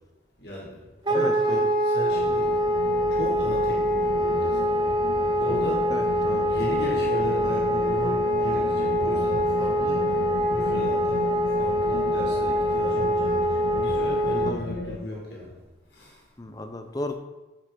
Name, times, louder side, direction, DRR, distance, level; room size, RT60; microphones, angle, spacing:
voice 1, 0.4-0.8 1.1-2.5 3.1-4.6 5.4-5.9 6.5-10.1 10.5-11.3 11.6-15.5 15.9-16.2, left 1 dB, 65° left, -4 dB, 1.9 m, -35 dB
voice 2, 1.1-1.6 5.9-6.5 14.5-14.6 16.4-17.1, left 1 dB, 20° left, 7 dB, 0.5 m, -34 dB
Wind instrument woodwind instrument, 1.1-14.5, equal, 25° right, 0.6 m, -24 dB
sound 1, 2.1-15.0, left 2 dB, 90° left, 0.6 m, -34 dB
6.5 x 6.3 x 3.8 m, 1.1 s
head